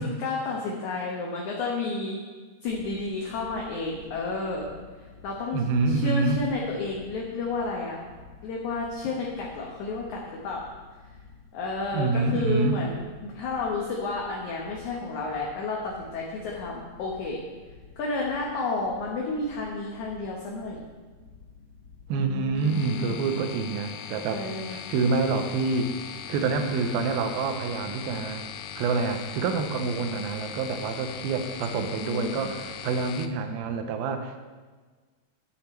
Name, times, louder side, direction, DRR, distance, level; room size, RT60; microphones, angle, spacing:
voice 1, 0.0-2.2 2.6-4.7 5.0-8.0 8.4-10.7 11.5-17.4 18.0-20.8 22.1-23.4 24.3-24.8 31.9-32.5, left 3 dB, 65° left, -2 dB, 2.0 m, -31 dB
sound 1, 2.7-22.6, left 5 dB, 50° left, 3.5 m, -51 dB
voice 2, 5.5-6.4 11.9-12.8 22.1-25.9 26.3-28.4 28.8-34.4, right 4 dB, 80° right, 7 dB, 2.5 m, -27 dB
sound 2, 22.6-33.3, left 9 dB, 85° left, 1.9 m, -39 dB
8.7 x 7.9 x 4.3 m, 1.4 s
omnidirectional pair, 4.5 m